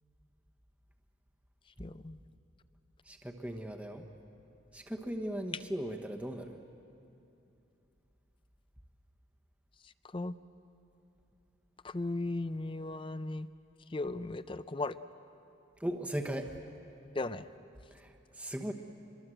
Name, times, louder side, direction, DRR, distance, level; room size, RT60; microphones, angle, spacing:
voice 1, 1.8-2.2 10.1-10.4 11.8-13.5 13.9-15.0 17.1-17.5, left 2 dB, 25° left, 14 dB, 0.5 m, -36 dB
voice 2, 3.0-4.1 4.7-6.6 15.8-16.5 17.9-18.7, right 1 dB, 5° right, 4 dB, 1.1 m, -38 dB
26.5 x 22.5 x 7.7 m, 2.8 s
head